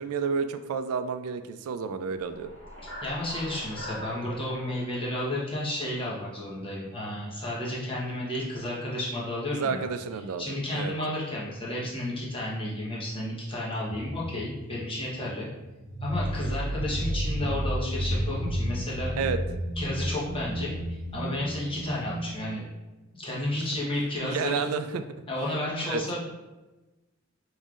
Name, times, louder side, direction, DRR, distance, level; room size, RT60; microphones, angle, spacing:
voice 1, 0.0-2.5 9.5-10.9 19.2-19.4 24.2-25.0 25.8-26.0, right 5 dB, 90° right, 10 dB, 0.3 m, -30 dB
sound 1, 2.1-6.4, equal, 80° left, 1.5 m, -43 dB
voice 2, 3.0-9.8 10.4-15.5 16.0-19.1 19.8-22.6 23.1-24.5 25.3-26.2, left 1 dB, 25° left, -6 dB, 1.0 m, -32 dB
sound 2, 13.8-22.3, equal, 70° right, 0.7 m, -32 dB
5.4 x 3.1 x 2.4 m, 1.1 s
head